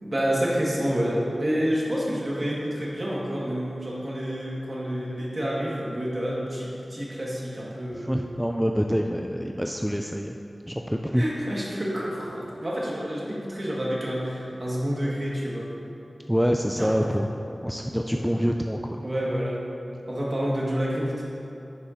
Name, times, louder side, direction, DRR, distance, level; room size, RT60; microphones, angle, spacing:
voice 1, 0.0-8.1 11.1-15.7 16.8-17.0 18.1-18.3 19.0-19.6 20.1-21.2, equal, 40° right, -5 dB, 1.8 m, -28 dB
voice 2, 7.9-10.4 10.7-11.2 16.3-17.3 17.6-19.0, equal, ahead, 2 dB, 0.3 m, -26 dB
11.0 x 6.8 x 2.8 m, 2.8 s
wide cardioid pair, 80°, 0 cm